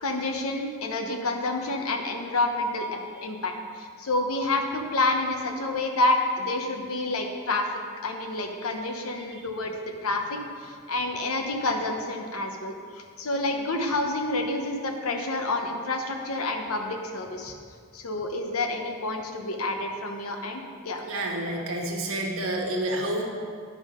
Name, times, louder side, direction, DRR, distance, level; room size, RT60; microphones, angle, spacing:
voice 1, 0.0-7.7 8.0-9.7 10.0-12.7 13.2-17.5 17.9-21.0, left 2 dB, 85° left, 4 dB, 1.0 m, -28 dB
voice 2, 21.0-23.2, right 1 dB, 75° right, 0 dB, 1.3 m, -29 dB
9.7 x 5.5 x 5.1 m, 2.1 s
head